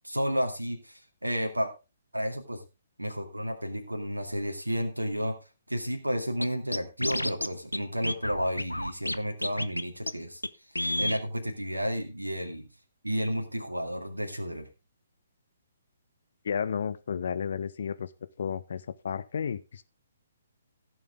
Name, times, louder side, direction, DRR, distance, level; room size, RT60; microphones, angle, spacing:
voice 1, 0.0-1.7 2.1-2.6 3.0-5.4 5.7-10.4 11.0-12.7 13.0-14.7, equal, 80° right, 4 dB, 2.1 m, -31 dB
Scratching (performance technique), 6.4-6.5 6.7-7.5 7.7-7.8 8.0-9.2 9.4-9.8 10.1-10.2 10.4-10.5 10.7-11.2, left 1 dB, 85° left, 0.9 m, -30 dB
voice 2, 16.4-18.1 18.4-19.8, left 7 dB, 50° left, 14 dB, 1.0 m, -32 dB
16.0 x 7.2 x 3.6 m, 0.28 s
figure-of-eight pair, 130°, 0 cm